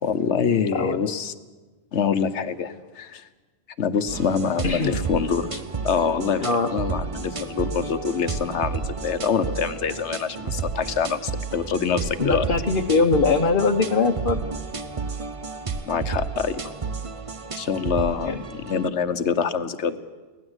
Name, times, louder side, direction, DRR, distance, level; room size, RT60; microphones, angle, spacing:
voice 1, 0.0-1.3 1.9-3.3 3.8-6.4 6.7-12.5 15.9-16.6 17.6-20.0, left 6 dB, 80° left, 11 dB, 1.3 m, -25 dB
voice 2, 0.7-1.0 4.6-5.0 6.4-6.7 12.2-14.4 18.2-18.4, left 4 dB, 50° left, 3 dB, 1.2 m, -21 dB
sound 1, 4.1-18.9, right 5 dB, 35° right, 0.8 m, -32 dB
24.5 x 17.5 x 8.0 m, 1.3 s
omnidirectional pair, 1.1 m